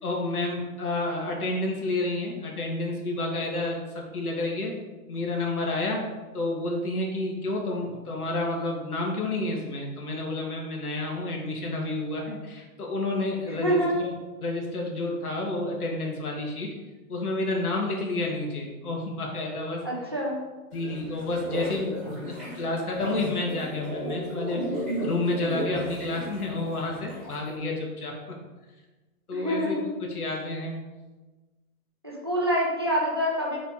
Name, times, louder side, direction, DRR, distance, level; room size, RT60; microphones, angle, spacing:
voice 1, 0.0-4.7 5.1-6.0 6.3-14.1 14.4-16.7 17.1-19.8 20.7-28.4 29.3-30.8, left 2 dB, 85° left, -1 dB, 2.5 m, -30 dB
voice 2, 13.5-14.0 19.8-20.4 29.3-30.0 32.0-33.6, equal, 20° right, -4 dB, 0.6 m, -26 dB
sound 1, 20.7-27.5, equal, ahead, 1.7 m, -34 dB
7.0 x 4.4 x 4.9 m, 1.2 s
hypercardioid pair, 180°, 43 cm